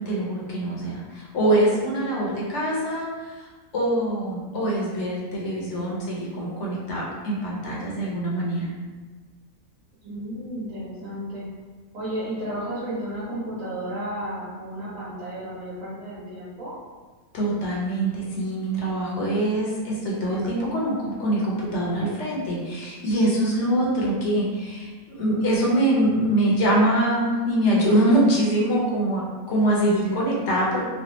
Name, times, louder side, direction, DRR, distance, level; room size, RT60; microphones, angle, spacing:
voice 1, 0.0-3.5 3.7-8.7 17.3-30.8, right 1 dB, 60° left, -4 dB, 1.0 m, -24 dB
voice 2, 10.0-11.4 11.9-16.7, right 1 dB, 70° right, -9 dB, 1.3 m, -33 dB
3.2 x 2.3 x 2.9 m, 1.3 s
omnidirectional pair, 1.4 m